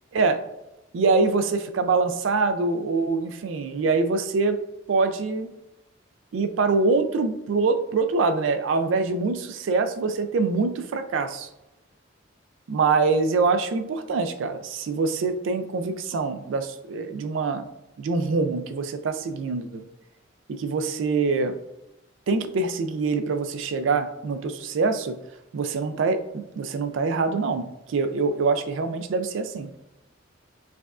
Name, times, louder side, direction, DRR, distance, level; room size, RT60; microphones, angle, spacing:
voice 1, 0.1-0.4 0.9-4.6 4.9-5.5 6.3-11.5 12.7-17.6 18.0-19.8 20.5-21.5 22.3-25.2 25.5-29.7, right 4 dB, 80° right, 9 dB, 0.4 m, -24 dB
4.8 x 2.3 x 2.4 m, 0.91 s
head